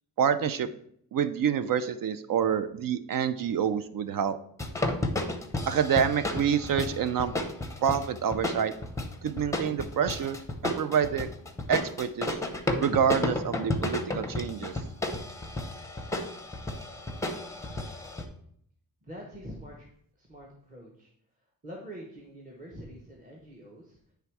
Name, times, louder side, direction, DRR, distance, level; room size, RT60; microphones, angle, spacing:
voice 1, 0.2-0.7 1.1-4.4 5.7-7.3 7.8-8.7 9.2-10.4 10.6-11.3 11.7-12.4 12.8-14.7, right 8 dB, 60° right, 12 dB, 0.5 m, -27 dB
sound 1, 4.6-18.2, left 1 dB, 10° left, 0.7 m, -32 dB
voice 2, 19.0-19.9 20.2-21.1 21.4-24.1, equal, 20° right, -2 dB, 1.1 m, -45 dB
9.5 x 3.5 x 4.6 m, 0.67 s
wide cardioid pair, 160°, 39 cm